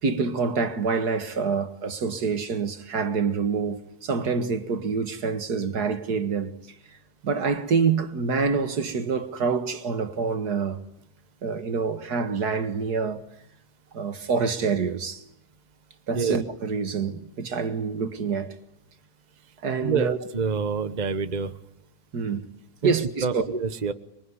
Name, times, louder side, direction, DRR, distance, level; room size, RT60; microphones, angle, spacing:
voice 1, 0.0-6.5 7.2-10.8 11.4-13.2 13.9-15.2 16.1-18.6 19.6-20.2 22.1-22.5 22.8-23.5, right 5 dB, 85° right, 2.3 m, -26 dB
voice 2, 19.8-21.5 22.8-23.9, right 5 dB, 30° right, 1.2 m, -27 dB
25.5 x 23.0 x 9.7 m
omnidirectional pair, 1.6 m